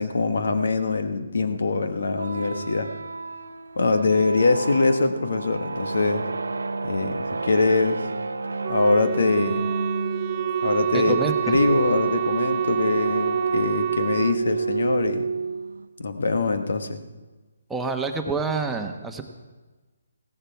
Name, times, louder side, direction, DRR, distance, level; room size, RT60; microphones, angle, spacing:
voice 1, 0.0-2.9 3.7-6.3 6.8-8.1 8.7-9.6 10.6-11.2 11.5-15.3 16.0-17.0, left 3 dB, 75° left, 8 dB, 1.5 m, -23 dB
sound 1, 2.1-15.9, right 4 dB, 90° right, 0.8 m, -29 dB
Wind instrument woodwind instrument, 8.6-14.4, right 12 dB, 30° right, 0.4 m, -29 dB
voice 2, 10.9-11.6 17.7-19.2, right 4 dB, 5° right, 2 dB, 1.1 m, -27 dB
17.0 x 14.5 x 4.7 m, 1.2 s
hypercardioid pair, 155°, 0 cm